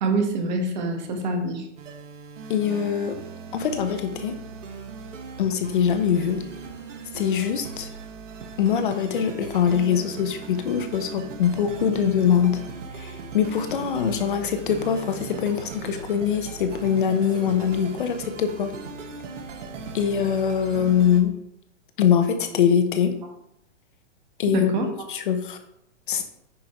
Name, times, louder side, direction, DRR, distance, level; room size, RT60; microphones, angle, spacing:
voice 1, 0.0-1.7 24.5-25.1, right 2 dB, 35° right, 4 dB, 1.5 m, -25 dB
sound 1, 1.8-21.2, right 4 dB, 75° right, 1.8 m, -38 dB
voice 2, 2.5-3.2 3.5-4.4 5.4-6.4 7.1-7.9 8.6-12.6 12.9-18.7 19.9-21.3 22.0-23.2 24.4-25.6 26.1-26.3, left 8 dB, 45° left, 7 dB, 0.9 m, -23 dB
9.8 x 5.3 x 4.5 m, 0.75 s
hypercardioid pair, 175°, 37 cm